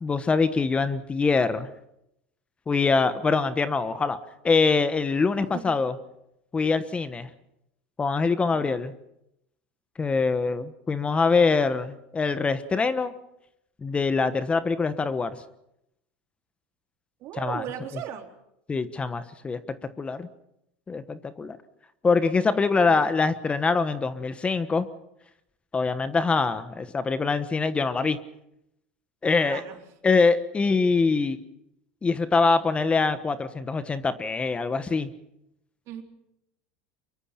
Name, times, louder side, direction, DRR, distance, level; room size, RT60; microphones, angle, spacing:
voice 1, 0.0-1.7 2.7-4.2 4.4-5.9 6.5-7.3 8.0-8.9 10.0-13.1 13.8-15.4 17.4-17.6 18.7-19.6 20.0-20.3 20.9-21.6 22.0-24.9 25.7-28.2 29.2-29.6 30.0-31.4 32.0-35.1, left 4 dB, 20° left, 12 dB, 1.2 m, -24 dB
voice 2, 8.4-8.7 17.2-18.3 22.7-23.2 29.4-29.8 35.9-36.0, right 11 dB, 55° right, 4 dB, 3.7 m, -38 dB
25.0 x 22.5 x 5.9 m, 0.82 s
supercardioid pair, 105°, 6 cm